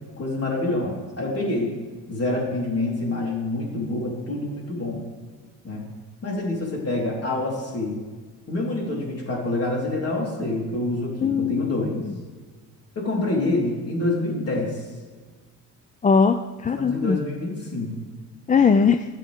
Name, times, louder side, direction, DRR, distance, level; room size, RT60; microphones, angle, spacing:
voice 1, 0.2-1.7 2.1-5.0 5.6-5.8 6.2-8.0 8.5-12.0 13.0-14.9 16.8-18.0, left 2 dB, 45° left, -3 dB, 4.1 m, -27 dB
voice 2, 11.2-12.0 16.0-17.2 18.5-19.1, left 5 dB, 25° left, 9 dB, 0.4 m, -20 dB
20.0 x 7.5 x 3.6 m, 1.4 s
cardioid pair, 95°, 34 cm